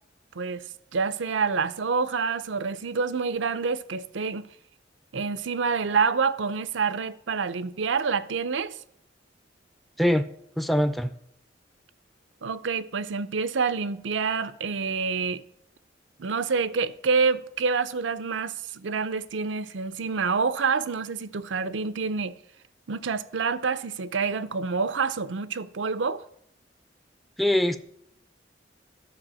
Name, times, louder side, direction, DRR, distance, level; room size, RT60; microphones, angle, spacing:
voice 1, 0.9-4.5 5.1-8.7 12.4-15.4 16.2-22.3 22.9-26.2, right 5 dB, 85° right, 0.6 m, -27 dB
voice 2, 10.6-11.1 27.4-27.8, equal, ahead, 0.4 m, -22 dB
12.0 x 4.8 x 7.5 m
head